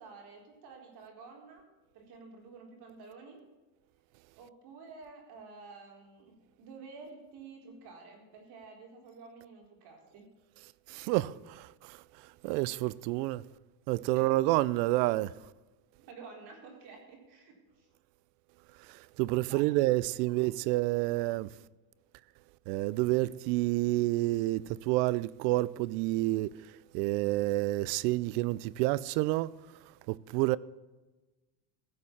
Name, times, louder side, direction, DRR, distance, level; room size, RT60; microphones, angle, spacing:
voice 1, 0.0-1.7 1.9-3.4 4.4-10.3 14.1-14.6 16.0-17.9 19.5-20.5 21.2-21.4, right 4 dB, 50° right, 4.2 m, -51 dB
voice 2, 10.9-13.5 13.9-15.5 18.7-21.5 22.7-30.6, right 19 dB, 75° right, 0.6 m, -29 dB
16.0 x 6.8 x 7.3 m
cardioid pair, 145°, 48 cm